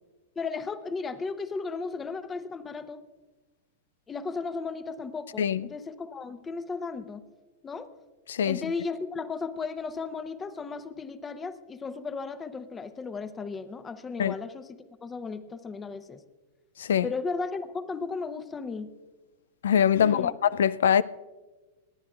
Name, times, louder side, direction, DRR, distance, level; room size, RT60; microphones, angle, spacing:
voice 1, 0.4-3.0 4.1-7.2 7.6-7.9 8.4-16.2 17.0-18.9 20.0-20.3, left 4 dB, 20° left, 0.8 m, -35 dB
voice 2, 5.4-5.7 8.3-8.6 14.2-14.3 16.8-17.1 19.6-21.0, left 8 dB, 75° left, 0.3 m, -23 dB
27.0 x 9.9 x 2.4 m
hypercardioid pair, 100°, 0 cm